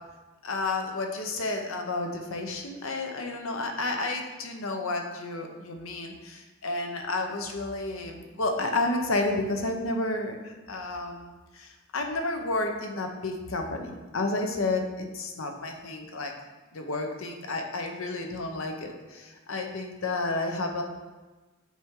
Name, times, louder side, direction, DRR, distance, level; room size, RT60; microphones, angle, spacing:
voice 1, 0.4-16.3 16.7-20.8, left 2 dB, 80° left, 3 dB, 0.8 m, -31 dB
7.2 x 4.4 x 3.7 m, 1.2 s
head